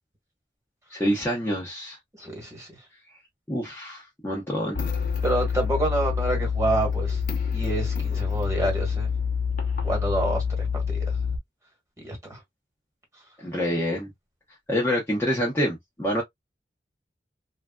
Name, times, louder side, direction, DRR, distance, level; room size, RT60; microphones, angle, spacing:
voice 1, 0.9-2.0 3.5-4.8 13.4-14.1 14.7-16.2, equal, 15° left, 0.7 m, -27 dB
voice 2, 2.2-2.7 5.2-7.2 7.5-9.1 9.8-11.1 12.0-12.4, right 2 dB, 15° right, 1.4 m, -28 dB
sound 1, 4.7-11.4, left 6 dB, 50° left, 0.7 m, -27 dB
3.2 x 2.4 x 2.2 m
head